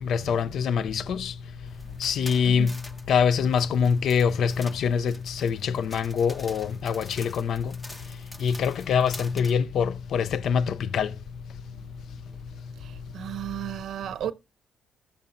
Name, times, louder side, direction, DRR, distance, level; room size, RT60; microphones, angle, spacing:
voice 1, 0.0-1.3 2.0-2.7 3.1-7.7 8.4-11.1, left 7 dB, 65° left, 0.4 m, -24 dB
sound 1, 1.7-9.5, left 1 dB, 20° left, 0.8 m, -46 dB
voice 2, 12.7-14.3, right 11 dB, 70° right, 0.6 m, -34 dB
14.5 x 6.9 x 2.5 m
cardioid pair, 90°, 0 cm